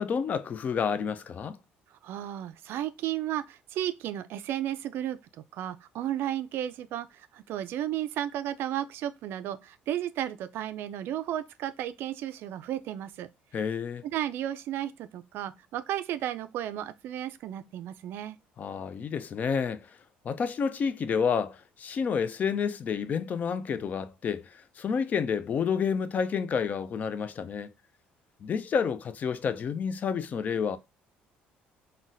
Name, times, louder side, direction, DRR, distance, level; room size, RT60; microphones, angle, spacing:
voice 1, 0.0-1.6 13.5-14.0 18.6-20.0 20.2-27.7 28.4-30.8, left 6 dB, 40° left, 0.3 m, -29 dB
voice 2, 2.0-5.2 5.5-13.3 14.0-18.4, right 11 dB, 65° right, 0.3 m, -33 dB
3.9 x 2.1 x 2.5 m
cardioid pair, 105°, 4 cm